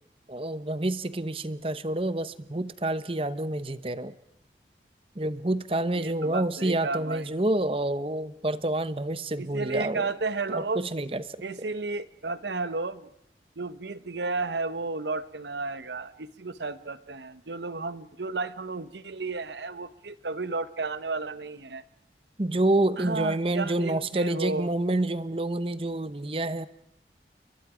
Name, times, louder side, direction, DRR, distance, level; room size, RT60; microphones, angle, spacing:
voice 1, 0.3-4.1 5.2-10.1 10.5-11.4 22.4-26.7, right 1 dB, 30° right, 14 dB, 0.9 m, -28 dB
voice 2, 5.9-7.3 9.4-10.8 11.4-13.1 13.6-21.8 23.0-24.7, right 3 dB, 80° right, 14 dB, 1.1 m, -33 dB
30.0 x 23.0 x 5.0 m, 0.78 s
head